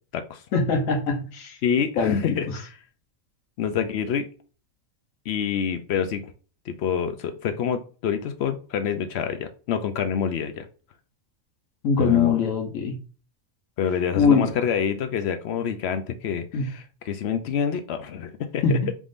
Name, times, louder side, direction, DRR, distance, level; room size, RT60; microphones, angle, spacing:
voice 1, 0.5-1.6 2.0-2.4 11.8-12.9 14.2-14.4 16.5-16.7 18.6-18.8, left 5 dB, 90° left, 3 dB, 1.2 m, -22 dB
voice 2, 1.6-2.8 3.6-4.3 5.3-6.3 6.7-10.7 12.0-12.4 13.8-18.9, left 7 dB, 65° left, 8 dB, 0.7 m, -27 dB
4.7 x 3.6 x 2.5 m, 0.38 s
omnidirectional pair, 1.3 m